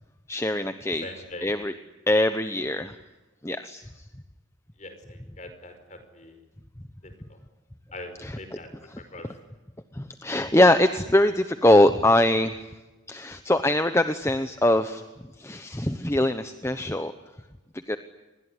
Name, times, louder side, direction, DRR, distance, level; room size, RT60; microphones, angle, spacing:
voice 1, 0.3-1.1 1.4-1.7 2.1-2.9 3.4-3.8 8.2-8.4 8.9-9.0 9.9-12.6 13.1-15.0 15.4-17.1 17.9-18.0, left 1 dB, 15° left, 9 dB, 0.9 m, -22 dB
voice 2, 1.0-1.5 4.8-6.4 7.0-7.4 7.9-9.4, left 1 dB, 35° left, 8 dB, 5.2 m, -42 dB
28.0 x 21.5 x 9.8 m, 1.1 s
head